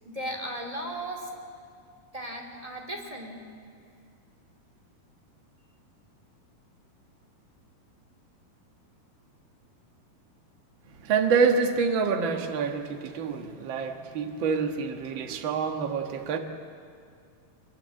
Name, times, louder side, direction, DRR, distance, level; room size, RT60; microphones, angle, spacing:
voice 1, 0.0-1.3 2.1-3.4, right 1 dB, 10° right, 1 dB, 2.1 m, -36 dB
voice 2, 11.0-16.4, right 5 dB, 50° right, 4 dB, 1.4 m, -27 dB
24.0 x 23.0 x 7.7 m, 2.3 s
omnidirectional pair, 4.5 m